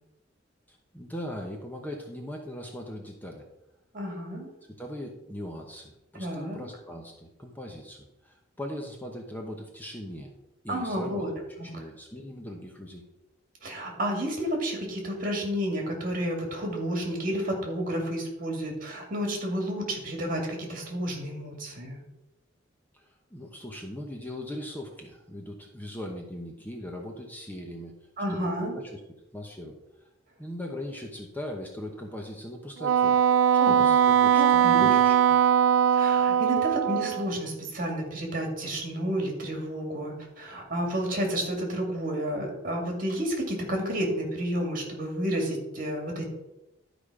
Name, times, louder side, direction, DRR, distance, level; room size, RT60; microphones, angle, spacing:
voice 1, 0.7-3.4 4.8-10.3 10.6-13.0 22.9-27.9 28.3-29.0 29.3-30.1 30.4-33.2 33.5-35.5, left 1 dB, 10° left, 1 dB, 0.9 m, -40 dB
voice 2, 3.9-4.5 6.1-6.6 10.7-11.3 11.6-11.7 13.6-22.0 28.2-28.7 33.6-33.9 34.4-34.9 35.9-46.2, equal, 45° right, 1 dB, 2.4 m, -31 dB
Wind instrument woodwind instrument, 32.8-37.3, right 9 dB, 85° right, 0.4 m, -21 dB
12.0 x 5.1 x 5.0 m, 0.93 s
head